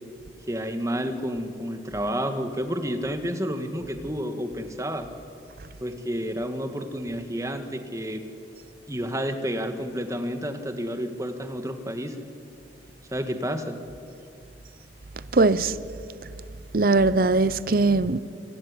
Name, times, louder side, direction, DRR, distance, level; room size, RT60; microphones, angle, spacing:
voice 1, 0.5-5.1 5.8-8.2 8.9-12.3 13.1-13.8, equal, 20° right, 1.9 m, -30 dB
voice 2, 15.3-15.8 16.7-18.2, right 3 dB, 55° right, 0.7 m, -20 dB
27.0 x 20.5 x 9.9 m
head